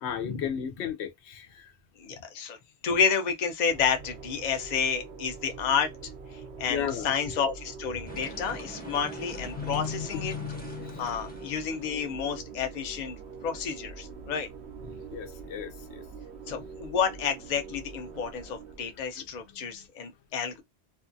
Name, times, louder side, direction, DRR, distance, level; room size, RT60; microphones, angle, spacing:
voice 1, 0.0-1.7 6.7-7.1 9.6-11.0 15.1-16.0 19.2-19.3, left 8 dB, 85° left, 0.9 m, -35 dB
voice 2, 2.0-2.6 2.8-5.9 6.6-10.3 11.0-13.2 13.4-14.5 16.5-20.6, left 6 dB, 50° left, 0.6 m, -30 dB
sound 1, 3.7-19.2, right 5 dB, 80° right, 0.9 m, -44 dB
sound 2, 8.1-12.0, right 1 dB, 10° left, 0.6 m, -44 dB
2.5 x 2.3 x 2.5 m
omnidirectional pair, 1.1 m